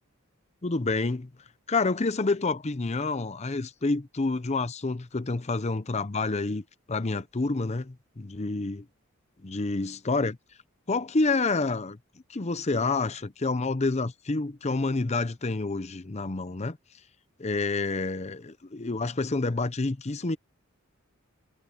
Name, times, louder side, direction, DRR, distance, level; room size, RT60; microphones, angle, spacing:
voice 1, 0.6-1.3 1.7-8.8 9.4-10.4 10.9-12.0 12.3-16.8 17.4-20.4, left 3 dB, 30° left, 0.7 m, -28 dB
head